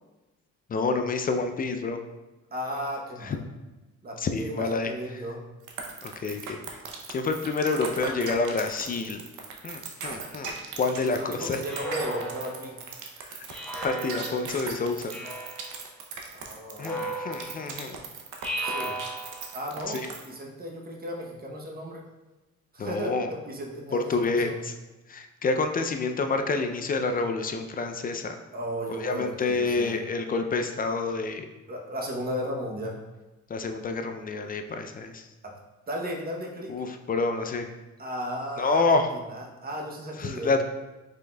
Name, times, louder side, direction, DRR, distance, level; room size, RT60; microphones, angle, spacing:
voice 1, 0.7-2.0 3.3-3.4 4.2-4.9 6.0-6.6 7.1-9.2 9.6-10.5 10.8-11.6 13.3-13.4 13.8-15.1 16.8-18.0 19.9-20.1 22.8-23.3 23.9-24.7 25.1-28.4 29.0-31.5 33.5-35.2 36.7-37.7 38.6-39.1 40.2-40.6, left 3 dB, 30° left, 6 dB, 0.4 m, -28 dB
voice 2, 2.5-3.4 4.0-5.4 11.1-12.8 16.3-17.4 18.6-19.0 19.5-22.0 22.7-24.7 28.5-30.0 31.7-33.0 35.4-35.5 35.9-36.7 38.0-40.6, equal, 30° right, 0 dB, 0.8 m, -35 dB
sound 1, 5.7-20.3, right 6 dB, 80° right, 0.7 m, -38 dB
Speech synthesizer, 11.7-12.8 13.5-14.5 15.1-15.8 16.8-17.7 18.4-19.6, right 1 dB, 5° left, 0.7 m, -35 dB
5.1 x 3.6 x 2.2 m, 1.1 s
cardioid pair, 90°, 30 cm